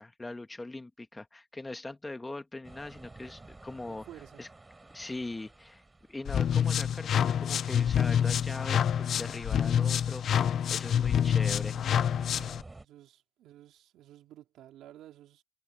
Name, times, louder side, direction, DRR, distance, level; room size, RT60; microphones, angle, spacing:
voice 1, 0.0-4.1 4.4-4.5 4.9-5.8 6.1-11.8, left 2 dB, 15° left, 1.7 m, -41 dB
sound 1, 2.6-12.9, right 2 dB, 20° right, 7.4 m, -54 dB
voice 2, 3.8-4.4 12.8-15.4, right 12 dB, 85° right, 3.2 m, -52 dB
sound 2, 6.2-12.6, left 9 dB, 65° left, 0.7 m, -27 dB
cardioid pair, 90°, 0 cm